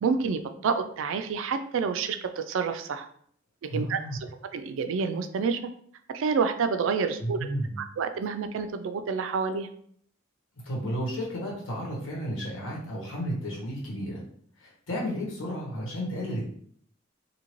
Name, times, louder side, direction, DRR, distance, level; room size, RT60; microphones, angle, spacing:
voice 1, 0.0-3.1 3.6-4.3 4.5-5.6 6.1-7.4 7.8-9.7, right 5 dB, 75° right, 8 dB, 0.3 m, -28 dB
voice 2, 3.7-4.2 7.2-7.8 10.6-14.2 14.6-16.5, equal, 80° left, -4 dB, 1.2 m, -32 dB
2.7 x 2.6 x 3.0 m, 0.62 s
head